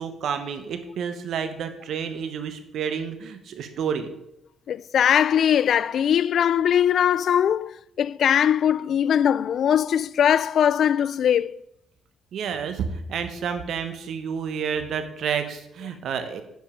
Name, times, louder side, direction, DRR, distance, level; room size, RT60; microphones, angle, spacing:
voice 1, 0.0-4.1 12.3-16.4, right 7 dB, 70° right, 1.1 m, -30 dB
voice 2, 4.7-11.6, left 9 dB, 65° left, 0.3 m, -21 dB
10.5 x 5.3 x 5.2 m
cardioid pair, 90°, 0 cm